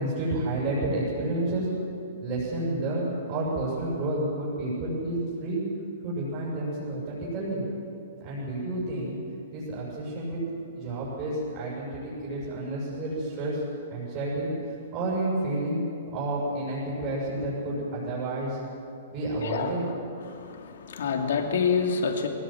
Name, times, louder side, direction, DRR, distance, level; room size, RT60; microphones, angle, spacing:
voice 1, 0.0-1.7 2.2-5.6 6.0-7.6 8.2-9.2 9.5-10.4 10.7-13.6 13.9-14.5 14.9-18.6 19.1-19.8, right 1 dB, 25° right, -6 dB, 7.0 m, -30 dB
voice 2, 19.4-19.7 20.2-22.3, left 6 dB, 70° left, 3 dB, 2.7 m, -27 dB
21.5 x 18.5 x 7.9 m, 2.7 s
hypercardioid pair, 170°, 0 cm